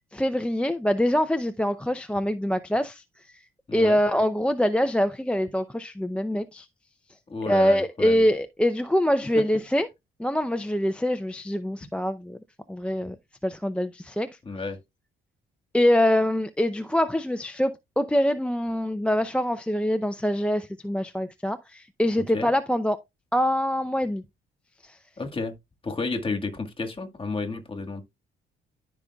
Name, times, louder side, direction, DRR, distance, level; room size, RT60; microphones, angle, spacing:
voice 1, 0.1-3.0 3.3-3.4 3.7-6.7 7.5-9.9 10.2-12.4 12.7-13.2 13.4-14.3 15.7-23.0 23.3-24.2 24.8-25.0, equal, 5° left, 0.6 m, -24 dB
voice 2, 7.3-8.3 9.4-9.5 14.4-14.8 22.3-22.5 25.2-25.5 25.8-28.0, left 3 dB, 25° left, 1.8 m, -31 dB
13.5 x 5.3 x 2.3 m
cardioid pair, 90°, 20 cm